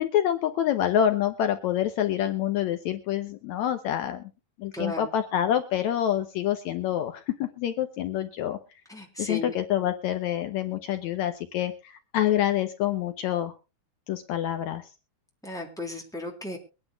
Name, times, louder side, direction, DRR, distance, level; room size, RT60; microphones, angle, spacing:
voice 1, 0.0-4.3 4.6-8.6 9.2-13.5 14.1-14.9, left 11 dB, 75° left, 8 dB, 2.0 m, -27 dB
voice 2, 4.7-5.1 8.9-9.5 15.4-16.6, left 2 dB, ahead, 1 dB, 3.0 m, -34 dB
23.5 x 9.9 x 2.3 m, 0.31 s
omnidirectional pair, 3.5 m